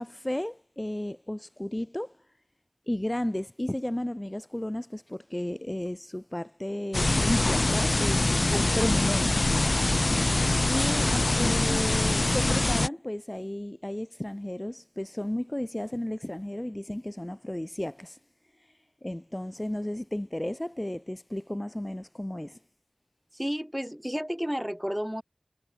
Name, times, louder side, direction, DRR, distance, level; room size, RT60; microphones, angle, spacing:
voice 1, 0.0-2.3 2.9-9.4 10.7-18.2 18.6-18.7 19.0-22.6, left 1 dB, 20° left, 0.9 m, -33 dB
sound 1, 6.9-12.9, left 2 dB, 55° left, 1.5 m, -24 dB
voice 2, 23.3-25.2, equal, 5° right, 6.6 m, -32 dB
wide cardioid pair, 45°, 0 cm